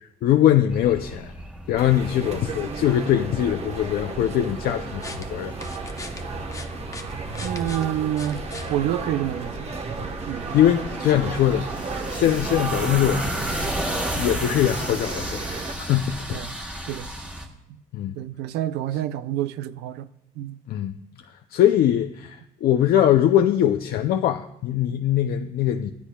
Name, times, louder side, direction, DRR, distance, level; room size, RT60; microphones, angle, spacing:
voice 1, 0.2-1.3 1.7-5.0 5.3-5.5 10.5-11.7 12.1-13.3 14.1-15.4 15.8-16.4 17.9-18.2 20.7-21.0 21.5-25.9, left 11 dB, 65° left, 0.5 m, -21 dB
sound 1, 0.7-17.5, equal, 5° right, 1.7 m, -34 dB
sound 2, 1.8-15.7, right 4 dB, 35° right, 1.2 m, -34 dB
sound 3, 4.7-9.6, left 3 dB, 20° left, 0.8 m, -41 dB
voice 2, 7.4-8.4 8.7-9.7 10.3-10.5 16.3-16.6 16.9-17.1 18.2-20.1 20.3-20.6, right 12 dB, 80° right, 0.6 m, -28 dB
24.5 x 8.3 x 2.3 m
cardioid pair, 110°, 17 cm